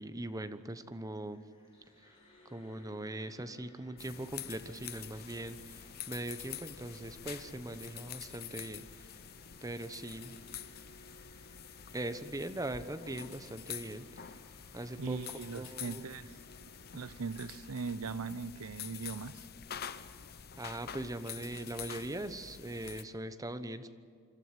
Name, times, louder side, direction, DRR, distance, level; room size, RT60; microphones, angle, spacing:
voice 1, 0.0-1.4 2.5-8.8 9.6-10.4 11.9-14.1 14.7-15.2 15.5-16.0 20.6-23.9, right 1 dB, 15° right, 10 dB, 1.0 m, -40 dB
sound 1, 1.2-18.1, left 1 dB, 25° left, 5.0 m, -62 dB
sound 2, 4.0-23.0, left 9 dB, 45° left, 0.8 m, -47 dB
voice 2, 15.0-16.3 16.9-19.5, right 4 dB, 90° right, 16 dB, 0.7 m, -40 dB
26.0 x 12.5 x 9.6 m, 2.3 s
head